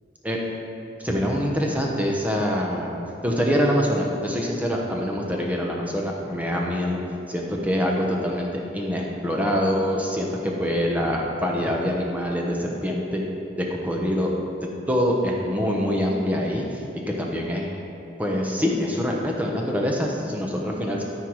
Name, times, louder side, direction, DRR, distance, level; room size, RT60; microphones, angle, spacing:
voice 1, 1.0-3.0 3.2-7.0 7.3-13.2 13.6-14.3 14.6-16.8 17.2-17.7 18.2-21.0, equal, 10° right, -1 dB, 0.9 m, -25 dB
13.0 x 4.6 x 4.8 m, 2.7 s
head